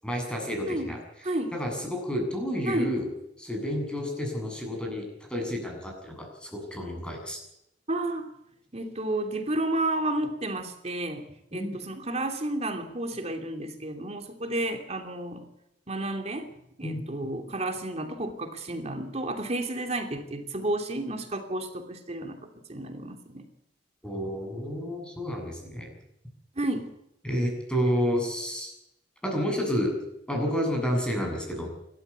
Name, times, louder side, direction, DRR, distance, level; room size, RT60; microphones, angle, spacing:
voice 1, 0.0-1.0 1.5-3.1 3.4-7.4 11.5-11.8 16.8-17.0 24.0-25.9 27.2-28.7 29.2-30.0 30.3-31.7, equal, 5° left, 1 dB, 7.6 m, -30 dB
voice 2, 1.2-1.5 2.6-2.9 7.9-8.3 8.7-15.4 15.9-16.5 16.8-23.5 26.6-26.9, right 1 dB, 35° right, 5 dB, 2.9 m, -31 dB
28.0 x 13.0 x 8.4 m, 0.82 s
head